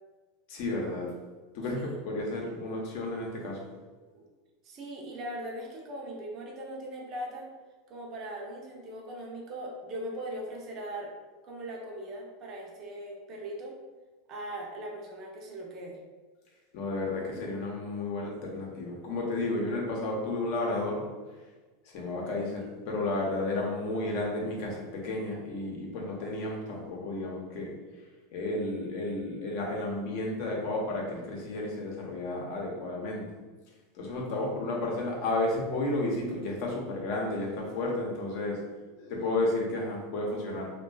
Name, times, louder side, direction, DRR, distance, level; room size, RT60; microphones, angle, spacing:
voice 1, 0.5-1.1 1.5-3.7 16.7-21.0 21.8-27.7 28.3-33.3 33.9-38.6 39.0-40.7, left 2 dB, 60° left, -1 dB, 0.7 m, -32 dB
voice 2, 4.6-7.5 7.9-11.1 11.4-13.8 14.3-16.0, right 1 dB, 40° right, -1 dB, 0.6 m, -39 dB
2.4 x 2.2 x 2.3 m, 1.3 s
supercardioid pair, 130°, 0 cm